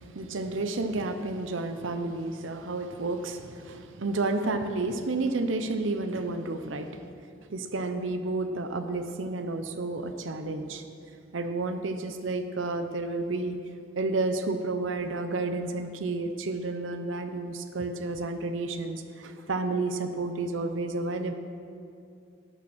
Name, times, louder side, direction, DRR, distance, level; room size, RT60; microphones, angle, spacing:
voice 1, 0.0-10.8 11.3-13.6 14.0-21.3, right 3 dB, 80° right, 8 dB, 0.7 m, -31 dB
18.0 x 6.1 x 6.1 m, 2.5 s
head